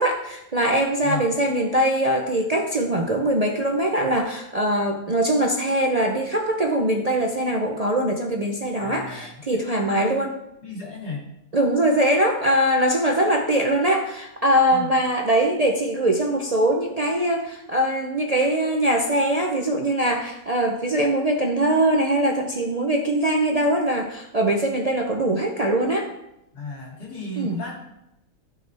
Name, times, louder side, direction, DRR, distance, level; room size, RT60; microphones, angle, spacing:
voice 1, 0.0-10.4 11.5-26.1 27.4-27.6, right 1 dB, 40° right, 1 dB, 0.6 m, -22 dB
voice 2, 8.8-10.2 10.6-11.2 14.7-14.9 26.5-27.8, left 2 dB, 90° left, -3 dB, 3.1 m, -34 dB
13.5 x 6.1 x 3.4 m, 0.86 s
omnidirectional pair, 1.6 m